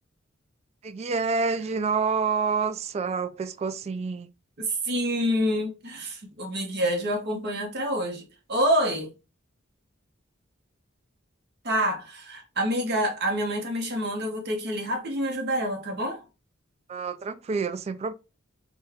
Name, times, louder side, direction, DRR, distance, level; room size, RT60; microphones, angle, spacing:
voice 1, 0.8-4.3 16.9-18.1, right 5 dB, 35° right, 0.3 m, -28 dB
voice 2, 4.6-9.1 11.6-16.2, equal, 55° right, 1.1 m, -27 dB
4.0 x 2.3 x 3.5 m
head